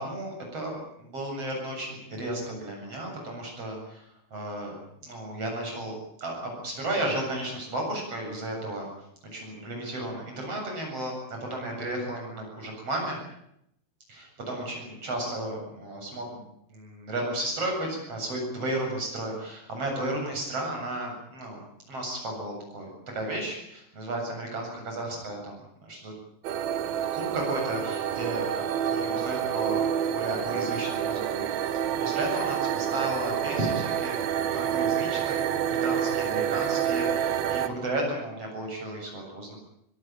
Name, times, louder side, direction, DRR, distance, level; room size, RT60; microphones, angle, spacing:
voice 1, 0.0-4.7 5.0-8.9 9.3-13.2 14.1-16.3 16.7-21.6 21.9-26.1 26.8-39.5, right 1 dB, 30° right, 1 dB, 8.5 m, -34 dB
sound 1, 26.4-37.7, right 9 dB, 65° right, 2.7 m, -28 dB
24.5 x 18.0 x 8.9 m, 0.76 s
omnidirectional pair, 5.3 m